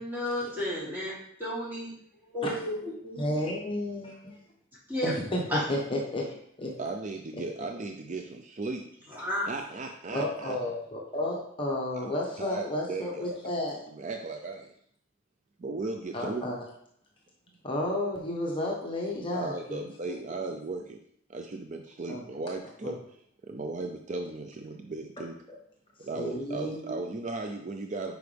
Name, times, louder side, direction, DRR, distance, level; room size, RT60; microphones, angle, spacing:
voice 1, 0.0-1.9 2.3-3.3 4.9-5.1 5.5-5.6 9.1-9.5, left 1 dB, 10° right, -8 dB, 3.0 m, -32 dB
voice 2, 3.2-4.4 5.0-6.7 10.1-13.8 16.1-16.6 17.6-20.2 22.1-22.2 22.8-23.0 26.1-26.8, left 1 dB, 25° left, -2 dB, 1.2 m, -32 dB
voice 3, 6.8-8.9 9.5-10.6 11.9-12.1 12.4-13.3 13.9-14.7 15.6-16.4 19.3-21.0 21.3-23.2 23.4-25.4 26.0-28.2, right 3 dB, 40° right, 4 dB, 0.5 m, -36 dB
9.4 x 5.2 x 3.4 m, 0.67 s
head